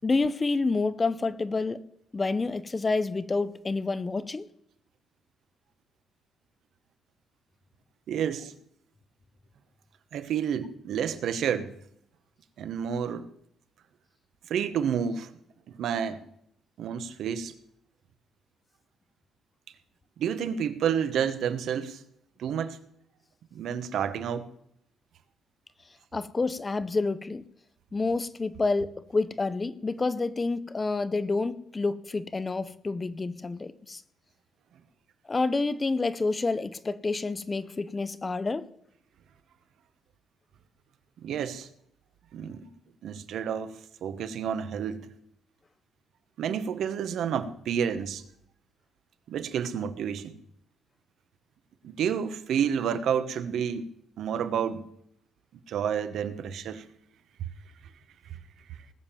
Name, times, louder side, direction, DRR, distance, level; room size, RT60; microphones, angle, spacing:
voice 1, 0.0-1.8 2.1-4.5 26.1-27.4 27.9-34.0 35.3-38.7, left 3 dB, 20° left, 0.6 m, -28 dB
voice 2, 8.1-8.5 10.1-11.7 12.6-13.3 14.5-15.3 15.7-16.2 16.8-17.5 20.2-22.0 22.4-22.8 23.5-24.5 41.2-41.7 42.3-42.7 43.0-45.1 46.4-48.2 49.3-50.3 51.8-53.9 54.2-54.8 55.7-56.8 58.3-58.4 58.7-58.8, right 8 dB, 70° right, 1.1 m, -30 dB
19.0 x 7.3 x 7.4 m
cardioid pair, 150°, 0 cm